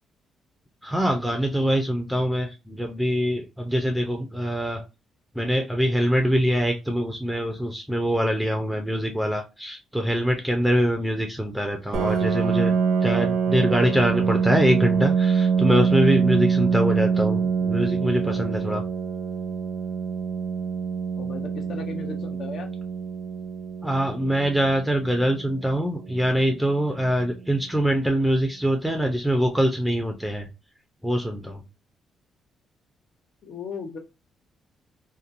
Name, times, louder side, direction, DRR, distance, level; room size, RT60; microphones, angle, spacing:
voice 1, 0.8-4.8 5.4-12.7 13.0-18.8 23.8-30.5 31.0-31.6, equal, ahead, 4 dB, 0.5 m, -24 dB
Piano, 11.9-27.3, right 6 dB, 80° right, 0.6 m, -25 dB
voice 2, 21.2-22.7 33.4-34.0, left 5 dB, 60° left, 5 dB, 0.7 m, -36 dB
2.8 x 2.2 x 2.5 m, 0.27 s
cardioid pair, 90°, 0 cm